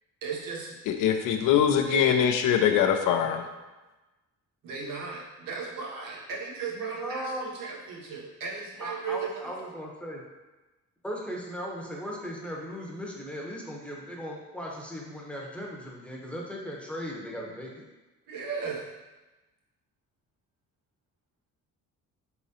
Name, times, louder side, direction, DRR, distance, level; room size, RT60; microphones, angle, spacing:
voice 1, 0.2-0.8 1.8-2.2 4.6-9.7 18.3-18.9, right 5 dB, 80° right, -3 dB, 0.9 m, -36 dB
voice 2, 0.9-3.4, left 8 dB, 70° left, 5 dB, 0.5 m, -23 dB
voice 3, 6.7-7.5 8.8-10.2 11.0-17.8, equal, 5° left, -2 dB, 0.7 m, -37 dB
3.8 x 3.0 x 2.7 m, 1.1 s
cardioid pair, 95°, 33 cm